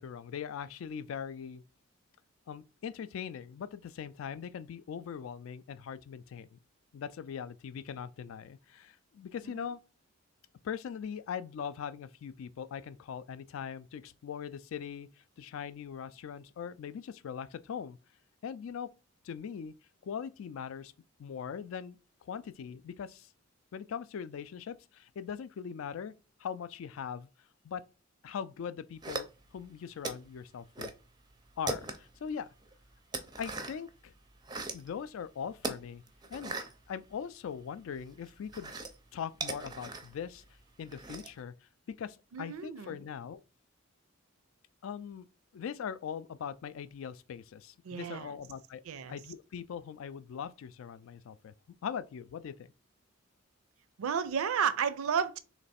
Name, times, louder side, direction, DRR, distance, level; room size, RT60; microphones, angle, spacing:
voice 1, 0.0-1.6 2.5-6.6 6.9-9.8 10.6-18.0 18.4-18.9 19.2-19.7 20.0-20.9 21.2-22.0 22.2-23.3 23.7-26.1 26.4-27.3 27.6-27.8 28.2-30.9 31.6-32.5 33.4-34.1 34.7-36.0 36.3-36.5 36.9-38.7 39.1-40.4 40.8-41.7 42.0-43.4 44.8-45.3 45.5-48.8 49.1-51.5 51.8-52.5, left 7 dB, 70° left, 0.3 m, -41 dB
sound 1, 29.0-29.7 30.0-31.0 31.3-32.2 32.6-33.9 34.3-34.9 35.6-37.6 37.9-41.4, right 3 dB, 20° right, 0.4 m, -39 dB
voice 2, 42.3-43.0 47.8-48.3 48.9-49.2 54.0-55.4, right 7 dB, 80° right, 0.4 m, -32 dB
3.3 x 3.0 x 4.1 m
head